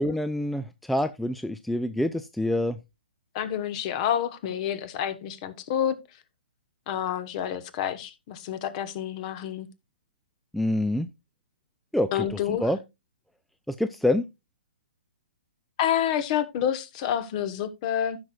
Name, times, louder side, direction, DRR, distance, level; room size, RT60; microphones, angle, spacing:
voice 1, 0.0-2.8 10.5-11.1 11.9-12.3 12.6-12.8 13.7-14.2, left 1 dB, ahead, 0.3 m, -26 dB
voice 2, 3.3-6.0 6.9-9.7 12.1-12.7 15.8-18.2, left 10 dB, 40° left, 1.1 m, -28 dB
15.0 x 6.1 x 2.4 m
hypercardioid pair, 135°, 6 cm